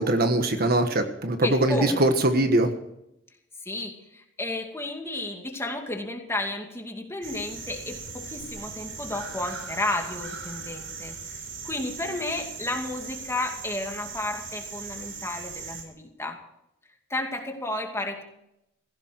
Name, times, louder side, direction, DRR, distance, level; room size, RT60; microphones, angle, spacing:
voice 1, 0.0-2.7, right 1 dB, 50° right, 7 dB, 1.5 m, -22 dB
voice 2, 1.4-2.1 3.6-11.2 11.6-16.4 17.1-18.2, left 2 dB, 15° left, 3 dB, 2.4 m, -32 dB
sound 1, 7.2-15.8, right 5 dB, 80° right, 4.1 m, -39 dB
17.0 x 16.0 x 4.6 m, 0.83 s
head